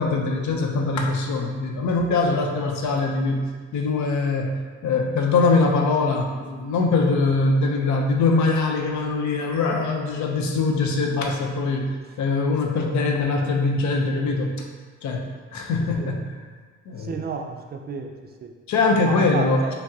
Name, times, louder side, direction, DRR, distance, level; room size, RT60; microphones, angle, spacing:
voice 1, 0.0-14.6 15.0-16.4 16.9-17.2 18.7-19.7, left 3 dB, 70° left, 2 dB, 0.6 m, -22 dB
voice 2, 17.0-18.5 19.0-19.7, right 5 dB, 35° right, 3 dB, 0.4 m, -32 dB
5.7 x 2.0 x 2.7 m, 1.5 s
cardioid pair, 90°, 30 cm